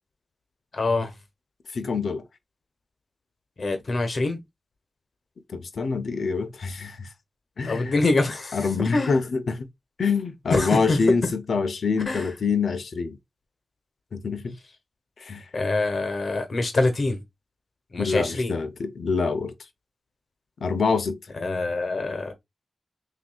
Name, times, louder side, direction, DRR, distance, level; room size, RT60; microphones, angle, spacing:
voice 1, 0.7-1.1 3.6-4.4 7.6-9.1 10.5-11.3 12.1-12.3 15.5-17.2 17.9-18.5 21.3-22.3, left 2 dB, 60° left, 1.1 m, -25 dB
voice 2, 1.7-2.2 5.5-7.1 7.6-7.9 8.5-9.7 10.0-11.2 11.5-13.2 14.1-14.5 15.2-15.4 18.0-19.5 20.6-21.2, left 5 dB, 80° left, 0.6 m, -25 dB
6.0 x 2.7 x 2.2 m
wide cardioid pair, 100°, 0 cm